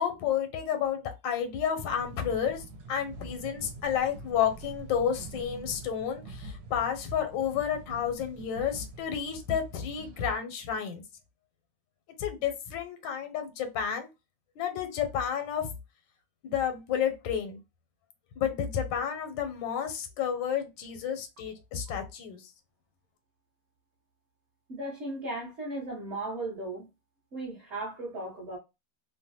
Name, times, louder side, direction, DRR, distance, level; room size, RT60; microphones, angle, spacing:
voice 1, 0.0-2.6 2.9-11.0 12.2-14.1 14.6-15.7 16.4-17.6 18.4-22.4, left 8 dB, 80° left, 1.3 m, -31 dB
sound 1, 1.9-10.3, right 2 dB, 75° right, 1.3 m, -45 dB
voice 2, 24.7-26.9 27.3-28.6, right 2 dB, 50° right, 0.9 m, -36 dB
3.0 x 2.1 x 2.7 m
omnidirectional pair, 2.0 m